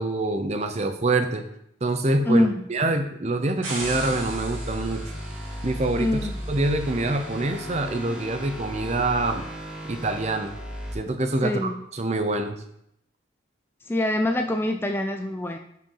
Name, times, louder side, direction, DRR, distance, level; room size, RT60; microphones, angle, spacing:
voice 1, 0.0-1.4 1.8-5.0 5.6-6.2 6.5-9.4 9.9-10.5 10.9-12.6, right 2 dB, 35° right, 7 dB, 0.6 m, -25 dB
sound 1, 3.6-8.7, right 2 dB, 85° right, 2.2 m, -40 dB
sound 2, 3.8-10.9, equal, 5° right, 1.1 m, -35 dB
voice 2, 6.0-6.3 11.4-11.7 13.9-15.6, left 1 dB, 10° left, 5 dB, 0.3 m, -24 dB
5.8 x 4.7 x 5.6 m, 0.75 s
head